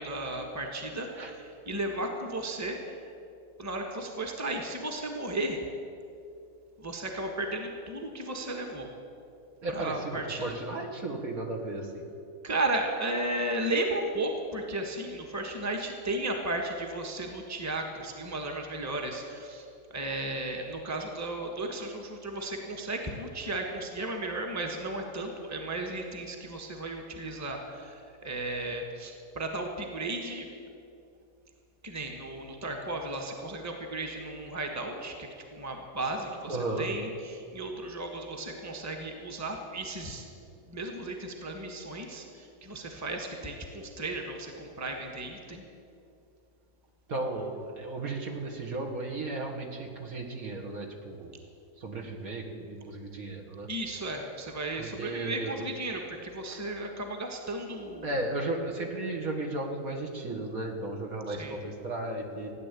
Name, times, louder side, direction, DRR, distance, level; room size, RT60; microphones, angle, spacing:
voice 1, 0.0-3.0 3.6-5.6 6.8-8.9 9.7-10.6 12.4-30.5 31.8-40.2 40.7-45.6 53.7-58.1 61.3-61.6, right 2 dB, 10° right, 2 dB, 1.4 m, -35 dB
voice 2, 9.6-12.1 36.5-36.9 47.1-51.3 51.8-53.7 54.8-55.7 56.5-56.6 58.0-62.5, right 2 dB, 55° right, 1 dB, 2.1 m, -35 dB
16.0 x 10.0 x 8.4 m, 2.5 s
omnidirectional pair, 1.8 m